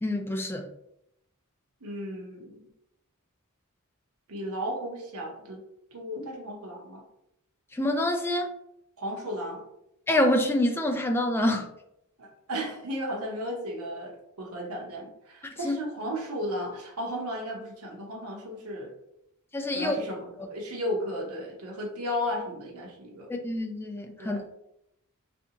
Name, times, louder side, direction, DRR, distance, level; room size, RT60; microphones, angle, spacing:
voice 1, 0.0-0.7 7.7-8.5 10.1-11.7 15.6-15.8 19.5-20.0 20.4-20.5 23.3-24.4, left 1 dB, 10° left, 4 dB, 0.3 m, -26 dB
voice 2, 1.8-2.6 4.3-5.6 5.9-7.0 9.0-9.6 12.2-18.9 19.7-23.3 24.2-24.4, equal, 85° right, 0 dB, 0.8 m, -34 dB
3.4 x 2.6 x 2.8 m, 0.80 s
head